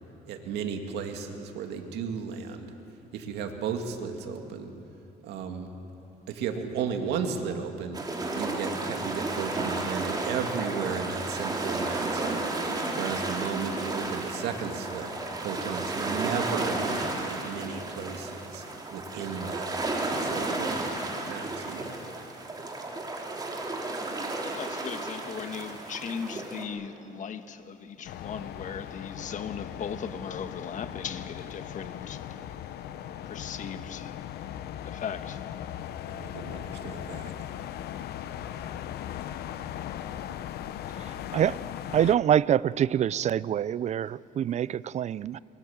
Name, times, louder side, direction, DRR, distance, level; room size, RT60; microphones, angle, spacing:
voice 1, 0.2-2.7 3.1-4.7 5.2-5.7 6.3-8.0 8.3-15.1 15.4-18.6 18.9-19.7 20.0-20.8 21.3-22.0 36.1-37.3, right 6 dB, 80° right, 2.4 m, -34 dB
sound 1, 7.9-26.6, right 2 dB, 25° right, 3.2 m, -33 dB
voice 2, 24.5-32.2 33.2-34.2 34.8-35.4, left 7 dB, 45° left, 1.4 m, -38 dB
sound 2, 28.0-42.2, left 10 dB, 70° left, 0.9 m, -38 dB
voice 3, 41.9-45.4, right 10 dB, 45° right, 0.4 m, -25 dB
23.5 x 23.0 x 7.4 m
cardioid pair, 110°, 17 cm